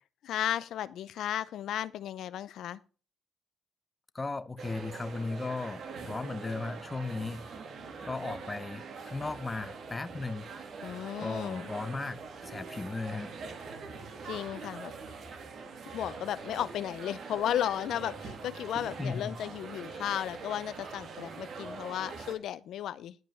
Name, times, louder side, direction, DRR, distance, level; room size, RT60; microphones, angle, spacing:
voice 1, 0.2-2.8 10.8-11.7 14.2-14.9 15.9-23.2, left 11 dB, 75° left, 0.5 m, -34 dB
voice 2, 4.1-7.4 8.1-10.5 11.2-13.3 19.0-19.3, left 3 dB, 20° left, 0.7 m, -36 dB
sound 1, 4.6-22.4, right 4 dB, 60° right, 2.4 m, -43 dB
10.5 x 5.3 x 5.8 m
cardioid pair, 90°, 0 cm